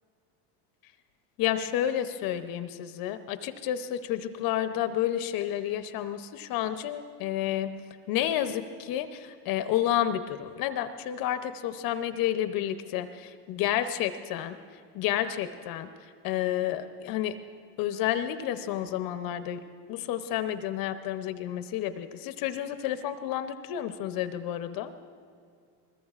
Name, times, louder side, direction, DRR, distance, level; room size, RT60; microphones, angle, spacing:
voice 1, 1.4-7.8 8.1-14.6 14.9-15.9 16.2-17.4 17.8-19.6 19.9-24.9, left 11 dB, 50° left, 10 dB, 0.7 m, -30 dB
24.0 x 21.0 x 2.4 m, 2.3 s
supercardioid pair, 115°, 46 cm